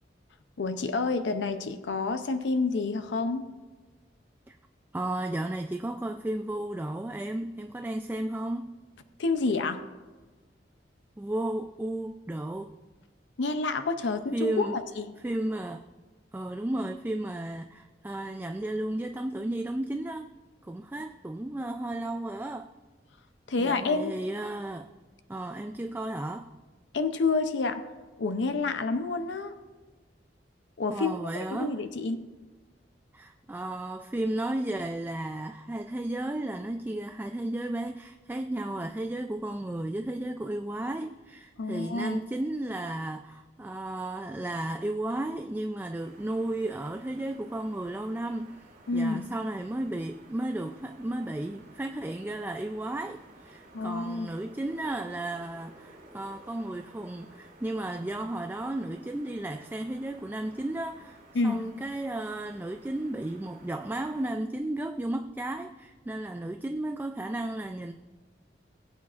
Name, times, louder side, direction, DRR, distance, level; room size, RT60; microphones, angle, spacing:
voice 1, 0.6-3.5 9.2-9.8 13.4-15.1 23.5-24.1 26.9-27.8 28.2-29.5 30.8-32.2 41.6-42.2 48.9-49.2 53.7-54.3 61.3-61.6, left 3 dB, 85° left, 0.6 m, -29 dB
voice 2, 4.9-8.8 11.2-12.7 14.3-14.8 15.2-15.8 16.3-20.3 20.6-22.7 23.6-24.9 25.3-26.5 30.9-31.8 33.1-48.7 48.9-67.9, right 1 dB, 10° right, 0.3 m, -33 dB
sound 1, 46.0-64.4, right 1 dB, 55° right, 3.7 m, -54 dB
20.0 x 8.4 x 2.5 m
head